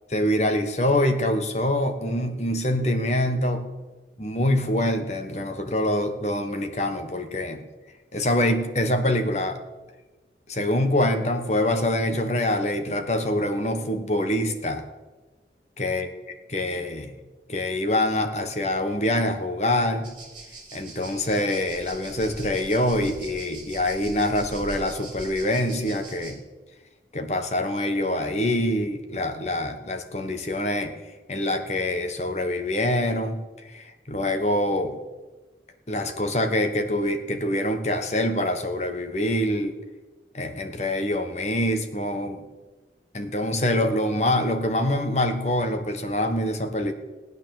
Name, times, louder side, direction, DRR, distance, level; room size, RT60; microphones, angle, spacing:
voice 1, 0.1-3.6 4.2-7.6 8.1-9.6 10.5-14.8 15.8-16.1 16.5-17.1 17.5-20.1 20.7-26.4 27.1-30.9 31.3-35.0 35.9-39.8 40.3-42.5 43.1-46.9, left 1 dB, 40° left, 7 dB, 1.3 m, -25 dB
sound 1, 20.0-26.3, right 2 dB, 30° right, 4.2 m, -42 dB
18.0 x 9.6 x 7.7 m, 1.2 s
head